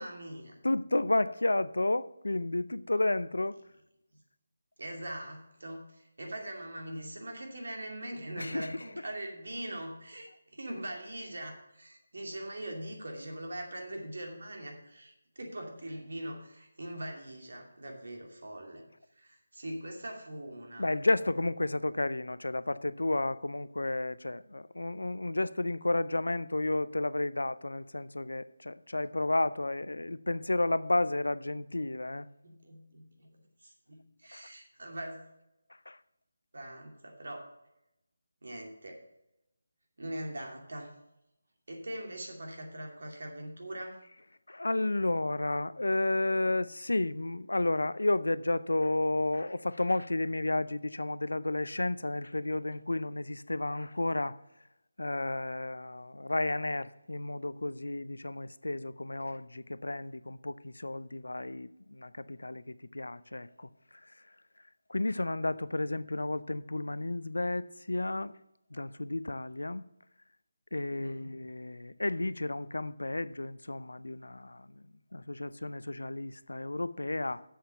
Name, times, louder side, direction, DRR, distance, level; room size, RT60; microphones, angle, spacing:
voice 1, 0.0-0.6 2.9-3.0 4.8-18.8 19.1-20.9 32.4-33.3 33.6-35.2 36.5-37.5 38.4-39.0 40.0-40.9 41.7-44.0 61.1-61.2 70.9-71.3, right 1 dB, 70° right, 2.5 m, -42 dB
voice 2, 0.6-3.6 8.4-8.8 20.8-32.3 34.3-34.4 35.9-36.0 44.5-54.4 55.0-63.7 64.0-64.1 64.9-68.4 68.7-69.8 70.7-74.8 75.1-77.4, left 2 dB, 80° left, 0.5 m, -32 dB
7.6 x 6.9 x 6.9 m
figure-of-eight pair, 160°, 0 cm